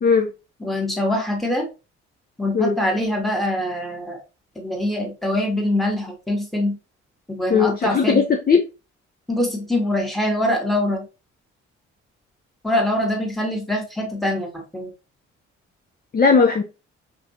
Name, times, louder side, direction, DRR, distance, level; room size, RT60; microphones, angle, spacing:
voice 1, 0.6-1.6 2.4-4.2 4.5-6.8 7.3-8.2 9.3-11.1 12.6-14.9, left 1 dB, ahead, 2 dB, 1.5 m, -23 dB
voice 2, 7.5-8.6 16.1-16.6, left 5 dB, 25° left, 2 dB, 0.7 m, -17 dB
5.0 x 2.6 x 2.9 m, 0.29 s
figure-of-eight pair, 40°, 34 cm